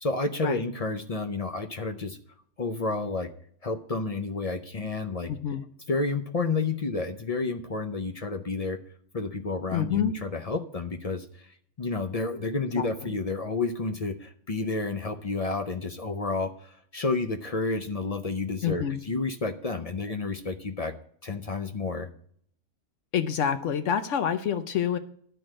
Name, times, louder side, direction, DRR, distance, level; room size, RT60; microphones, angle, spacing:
voice 1, 0.0-2.2 2.6-3.3 3.6-5.3 5.9-8.8 9.1-20.9 21.2-22.1, left 3 dB, 40° left, 7 dB, 0.5 m, -30 dB
voice 2, 5.3-5.6 9.7-10.1 12.7-13.1 18.6-19.0 23.1-25.0, left 8 dB, 75° left, 10 dB, 1.0 m, -27 dB
11.0 x 4.6 x 7.5 m, 0.62 s
omnidirectional pair, 1.3 m